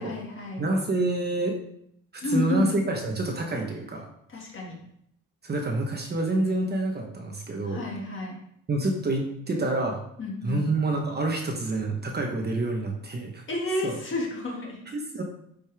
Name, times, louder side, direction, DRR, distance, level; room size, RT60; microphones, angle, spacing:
voice 1, 0.0-0.6 2.2-2.7 4.3-4.8 7.6-8.3 10.2-10.6 13.5-14.8, left 2 dB, 35° left, -2 dB, 2.4 m, -30 dB
voice 2, 0.6-1.6 2.1-4.1 5.4-7.8 8.7-10.0 10.4-13.4 13.8-14.0 14.9-15.2, right 2 dB, 30° right, 2 dB, 1.1 m, -27 dB
10.5 x 5.2 x 3.6 m, 0.72 s
cardioid pair, 135°, 33 cm